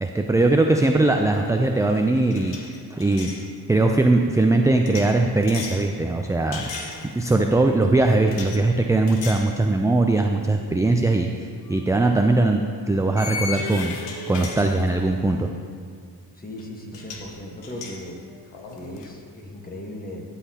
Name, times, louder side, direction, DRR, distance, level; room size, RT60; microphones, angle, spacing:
voice 1, 0.0-3.3 3.7-6.7 7.1-12.6 12.9-14.0 14.3-15.5, right 2 dB, 10° right, 3 dB, 0.4 m, -20 dB
sound 1, 1.3-1.6 1.8-3.5 4.9-5.9 6.5-7.4 8.3-8.6 9.1-9.5 10.0-10.1 11.7-11.8 13.2-15.2 16.6-16.7 16.9-17.3 17.6-19.1, left 4 dB, 85° left, 0.9 m, -36 dB
voice 2, 16.3-18.2 18.7-20.2, left 1 dB, 20° left, 1 dB, 1.4 m, -37 dB
12.5 x 5.7 x 2.9 m, 2.1 s
supercardioid pair, 50°, 41 cm